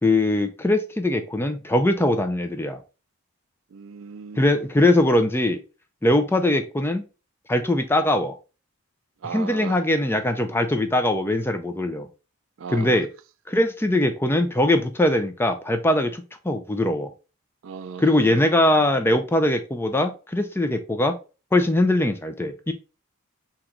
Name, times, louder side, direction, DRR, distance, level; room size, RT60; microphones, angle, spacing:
voice 1, 0.0-2.8 4.4-5.6 6.0-7.0 7.5-8.3 9.3-12.1 12.7-13.1 13.5-17.1 18.0-21.2 21.5-22.7, left 1 dB, 10° left, 0.4 m, -21 dB
voice 2, 3.7-4.4 9.2-9.8 12.6-13.0 17.6-19.2, right 6 dB, 60° right, 0.4 m, -37 dB
3.8 x 2.9 x 4.4 m
head